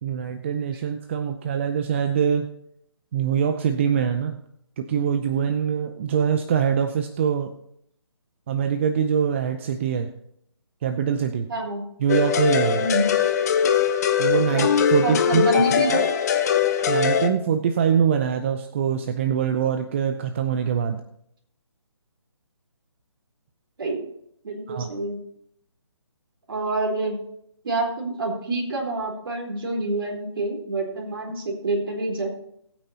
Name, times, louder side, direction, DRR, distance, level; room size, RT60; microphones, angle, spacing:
voice 1, 0.0-2.5 3.1-4.4 4.8-7.5 8.5-10.1 10.8-11.5 12.0-12.9 14.2-15.6 15.9-16.0 16.9-21.0 24.7-24.9, right 7 dB, 25° right, 8 dB, 0.6 m, -24 dB
voice 2, 11.5-11.8 12.8-13.1 14.5-14.7 15.0-16.0 23.8-24.0 24.4-25.2 26.5-27.2 27.6-32.3, right 2 dB, 50° right, 0 dB, 4.0 m, -27 dB
sound 1, 12.1-17.3, left 7 dB, 35° left, 1.1 m, -21 dB
20.0 x 8.9 x 2.9 m, 0.72 s
figure-of-eight pair, 150°, 15 cm